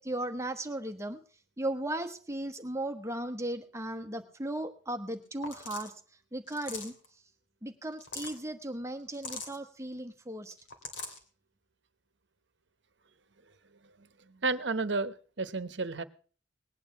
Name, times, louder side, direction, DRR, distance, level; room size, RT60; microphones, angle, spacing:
voice 1, 0.1-1.2 1.6-5.9 6.3-6.9 7.6-10.5, right 1 dB, 15° right, 5 dB, 1.2 m, -36 dB
sound 1, 5.4-5.9 6.5-7.0 7.8-8.4 9.1-9.6 10.5-11.2, left 4 dB, 75° left, 2.8 m, -41 dB
voice 2, 14.0-16.0, right 3 dB, 65° right, 13 dB, 1.0 m, -32 dB
19.5 x 9.4 x 5.7 m, 0.41 s
head